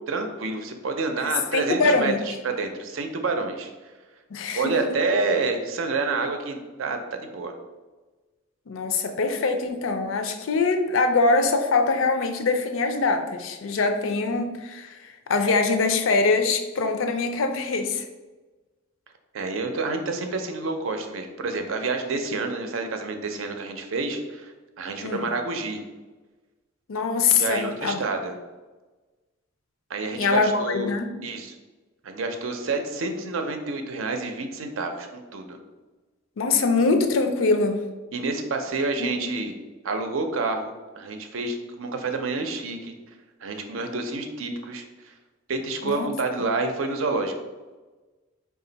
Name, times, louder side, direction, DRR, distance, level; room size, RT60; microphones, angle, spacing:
voice 1, 0.1-3.7 4.5-7.5 19.3-25.8 27.4-28.3 29.9-30.9 31.2-31.5 32.0-35.6 38.1-39.5 39.8-42.9 43.4-45.1 45.5-47.3, right 3 dB, 80° right, 5 dB, 0.5 m, -28 dB
voice 2, 1.5-2.2 4.3-4.7 8.7-18.0 25.0-25.3 26.9-28.0 30.2-31.1 36.4-37.8 39.0-39.3 45.8-46.1, left 3 dB, 80° left, 7 dB, 0.5 m, -23 dB
4.1 x 2.4 x 3.9 m, 1.2 s
head